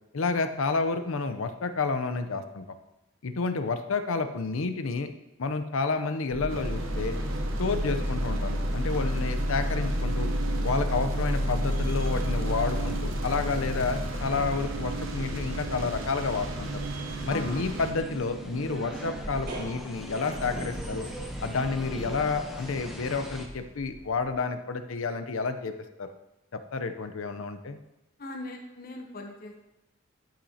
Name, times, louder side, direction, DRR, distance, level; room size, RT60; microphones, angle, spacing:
voice 1, 0.1-2.6 3.2-5.1 5.4-7.2 7.6-10.3 10.6-16.8 17.3-21.1 21.4-26.1 26.7-27.8, left 4 dB, 85° left, 9 dB, 0.6 m, -30 dB
sound 1, 6.3-24.3, equal, 45° right, 1.7 m, -32 dB
sound 2, 6.5-17.9, right 2 dB, 80° right, 0.9 m, -37 dB
sound 3, 12.9-23.5, equal, ahead, 0.7 m, -45 dB
voice 2, 17.3-17.7 28.2-29.6, left 2 dB, 45° left, 2 dB, 0.8 m, -39 dB
11.5 x 5.8 x 2.8 m, 0.97 s
head